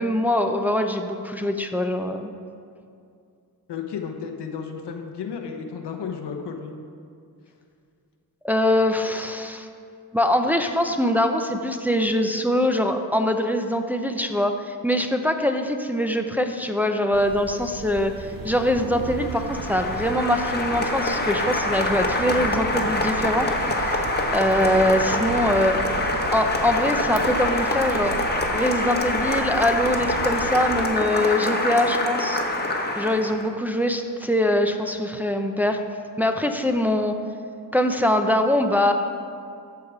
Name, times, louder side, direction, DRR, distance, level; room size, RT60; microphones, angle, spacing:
voice 1, 0.0-2.3 8.4-9.7 10.1-18.1 18.4-24.0 24.3-25.8 26.3-28.2 28.5-32.4 33.0-35.8 36.2-37.2 37.7-38.9, left 1 dB, 5° right, 5 dB, 0.6 m, -23 dB
voice 2, 3.7-6.7, left 6 dB, 85° left, 4 dB, 1.0 m, -33 dB
sound 1, 17.1-30.9, right 5 dB, 55° right, 0.7 m, -36 dB
Applause, 19.0-33.5, left 2 dB, 25° left, 1.1 m, -25 dB
14.0 x 4.8 x 4.8 m, 2.4 s
cardioid pair, 85°, 40 cm